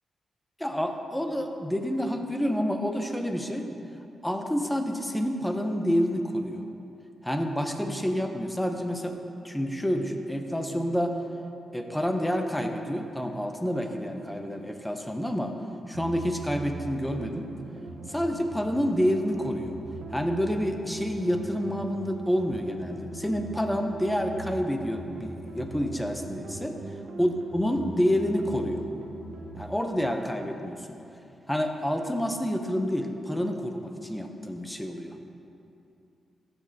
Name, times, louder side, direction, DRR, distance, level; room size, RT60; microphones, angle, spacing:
voice 1, 0.6-3.7 4.2-6.6 7.2-9.2 9.4-11.1 11.7-15.5 15.9-17.5 18.1-19.8 20.1-26.7 27.2-28.9 29.6-31.0 31.5-35.2, equal, 5° left, 5 dB, 1.0 m, -28 dB
sound 1, 15.9-29.7, right 2 dB, 85° right, 1.1 m, -41 dB
14.5 x 6.2 x 3.0 m, 2.8 s
supercardioid pair, 50°, 0 cm